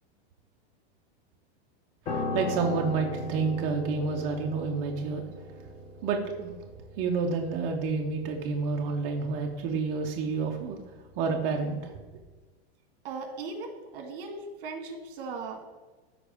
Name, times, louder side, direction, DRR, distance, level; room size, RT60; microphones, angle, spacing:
Piano, 2.1-11.4 11.7-12.0, left 1 dB, 15° left, 0.6 m, -38 dB
voice 1, 2.1-5.2 6.0-6.5 7.0-10.8 11.2-11.9, right 4 dB, 20° right, 1 dB, 0.3 m, -29 dB
voice 2, 13.0-15.8, right 4 dB, 55° right, 5 dB, 1.5 m, -38 dB
13.0 x 4.5 x 3.4 m, 1.3 s
supercardioid pair, 165°, 33 cm